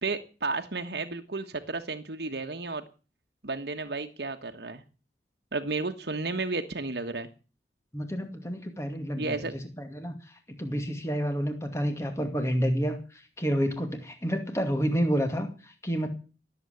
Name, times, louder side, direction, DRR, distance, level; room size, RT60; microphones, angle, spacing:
voice 1, 0.0-2.8 3.4-4.8 5.5-7.3 9.2-9.5, right 3 dB, 70° right, 6 dB, 1.4 m, -32 dB
voice 2, 7.9-9.5 9.8-10.2 10.6-16.1, equal, 15° left, 6 dB, 2.3 m, -29 dB
18.5 x 8.0 x 8.3 m, 0.36 s
head